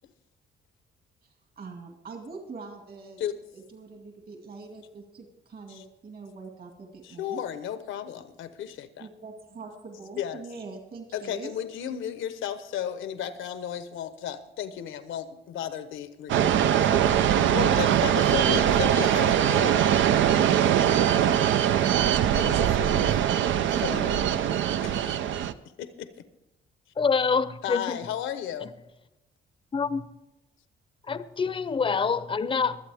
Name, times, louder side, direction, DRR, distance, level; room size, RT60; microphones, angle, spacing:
voice 1, 1.6-3.2 3.5-7.4 9.0-11.5, right 4 dB, 50° right, 2 dB, 2.3 m, -43 dB
voice 2, 7.0-9.1 10.2-10.4 11.1-19.8 22.3-23.2 23.7-24.3 24.8-25.2 25.8-26.1 27.6-28.7, left 10 dB, 80° left, 11 dB, 1.0 m, -34 dB
sound 1, 16.3-25.5, right 10 dB, 75° right, 0.6 m, -22 dB
voice 3, 27.0-28.0 29.7-30.0 31.1-32.8, left 5 dB, 25° left, 14 dB, 0.7 m, -26 dB
24.0 x 8.2 x 3.5 m, 0.93 s
cardioid pair, 90°, 20 cm